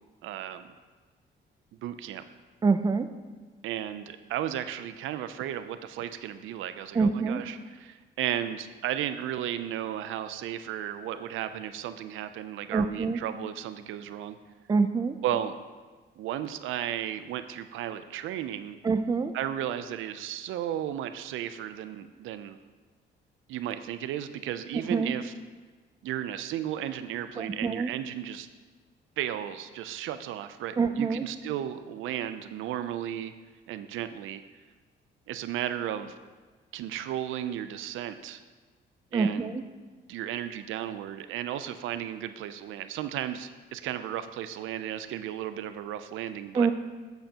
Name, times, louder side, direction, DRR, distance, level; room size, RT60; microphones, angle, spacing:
voice 1, 0.2-0.7 1.7-2.2 3.6-14.4 15.2-15.5 16.2-18.8 19.3-22.6 23.5-25.3 26.0-28.5 29.2-33.3 33.7-34.4 35.3-36.1 36.7-38.4 39.1-39.5 40.1-46.7, right 11 dB, 85° right, 11 dB, 0.4 m, -34 dB
voice 2, 2.6-3.1 6.9-7.4 12.7-13.2 14.7-15.2 18.8-19.3 24.9-25.1 27.4-27.9 30.8-31.2 39.1-39.6 46.5-46.7, right 4 dB, 20° right, 10 dB, 0.4 m, -25 dB
8.8 x 7.8 x 2.9 m, 1.4 s
cardioid pair, 90°, 20 cm